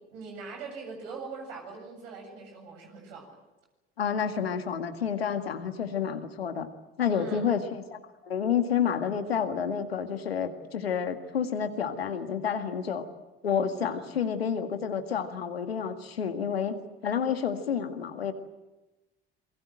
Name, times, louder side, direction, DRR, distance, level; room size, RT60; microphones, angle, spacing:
voice 1, 0.1-3.4 5.6-5.8 7.1-7.5 13.9-14.1, right 4 dB, 75° right, 3 dB, 7.6 m, -42 dB
voice 2, 4.0-6.7 7.0-8.0 8.2-13.0 13.4-16.7 17.0-18.3, left 7 dB, 85° left, 8 dB, 1.9 m, -29 dB
27.5 x 22.5 x 7.7 m, 1.1 s
hypercardioid pair, 65°, 30 cm